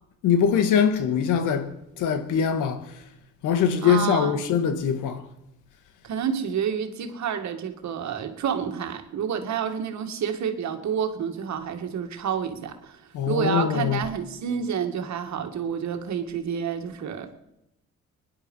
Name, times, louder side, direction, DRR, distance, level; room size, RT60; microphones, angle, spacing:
voice 1, 0.2-2.8 3.4-5.2 13.1-14.1, left 7 dB, 90° left, 1.7 m, -23 dB
voice 2, 3.8-4.4 6.0-13.0 13.3-17.3, right 7 dB, 65° right, 2.1 m, -29 dB
21.5 x 10.5 x 5.6 m
cardioid pair, 90°, 30 cm